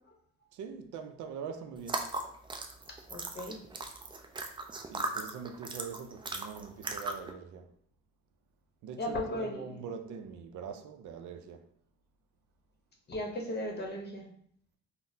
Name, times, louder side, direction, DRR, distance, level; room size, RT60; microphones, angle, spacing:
voice 1, 0.5-2.1 4.9-7.7 8.8-11.7, right 6 dB, 75° right, 0.5 m, -43 dB
sound 1, 1.8-7.3, right 2 dB, 15° right, 0.3 m, -38 dB
voice 2, 3.1-3.6 9.0-9.8 13.1-14.3, left 1 dB, 35° left, 0.8 m, -36 dB
3.9 x 2.0 x 2.6 m
cardioid pair, 90°, 30 cm